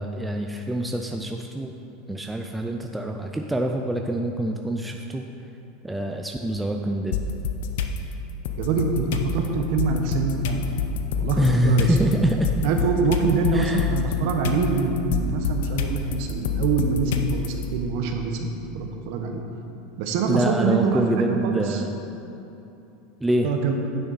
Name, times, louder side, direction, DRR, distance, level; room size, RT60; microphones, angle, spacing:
voice 1, 0.0-1.7 2.1-5.3 5.8-7.2 11.4-12.5 13.5-13.9 20.2-21.9 23.2-23.5, right 1 dB, 5° right, 2 dB, 0.4 m, -25 dB
sound 1, 7.1-8.0 8.4-17.6, left 7 dB, 75° left, 0.6 m, -27 dB
voice 2, 8.6-10.8 11.2-11.4 11.6-12.1 12.6-19.4 20.0-21.8 23.4-23.8, right 4 dB, 60° right, 4 dB, 1.0 m, -25 dB
9.1 x 7.0 x 4.1 m, 2.9 s
supercardioid pair, 150°, 0 cm